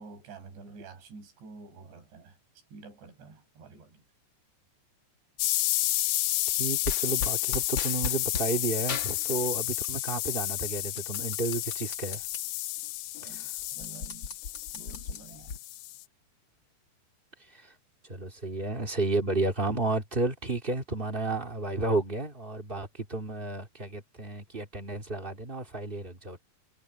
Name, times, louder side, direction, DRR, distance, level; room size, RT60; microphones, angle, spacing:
voice 1, 0.0-4.0 13.2-14.3 14.7-15.6, right 4 dB, 85° right, 8.1 m, -49 dB
sound 1, 5.4-16.0, left 16 dB, 75° left, 2.2 m, -31 dB
voice 2, 6.5-12.2 13.3-13.4 17.5-17.7 18.1-26.4, right 2 dB, 25° right, 1.0 m, -32 dB
sound 2, 6.8-8.5 8.9-10.0 10.3-12.4 12.8-12.9 13.1-15.6, left 5 dB, 50° left, 1.4 m, -37 dB
omnidirectional pair, 4.9 m